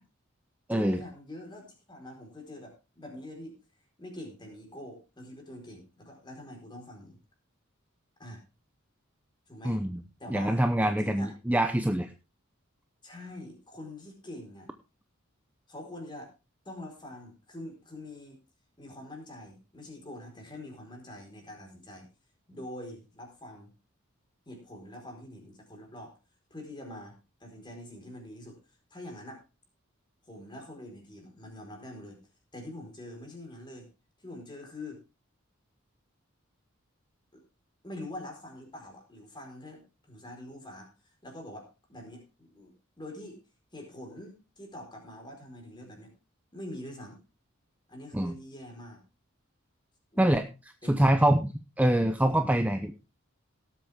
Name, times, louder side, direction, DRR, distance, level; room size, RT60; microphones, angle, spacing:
voice 1, 0.7-3.5 4.0-7.2 8.2-8.4 9.5-9.8 10.2-11.3 13.0-14.7 15.7-16.3 16.6-18.4 18.8-22.1 22.5-23.7 24.5-26.1 26.5-28.6 28.9-29.4 30.2-32.2 32.5-33.9 34.2-35.0 37.3-37.4 37.8-39.8 40.1-43.4 43.7-46.1 46.5-47.2 47.9-49.0 50.1-50.5 50.8-51.2, left 1 dB, 20° left, 2 dB, 4.4 m, -45 dB
voice 2, 9.6-10.0 10.3-12.1 48.1-48.3 50.2-50.4 50.9-51.5 51.8-53.0, right 1 dB, 5° right, 7 dB, 0.6 m, -25 dB
18.0 x 8.2 x 3.6 m, 0.29 s
head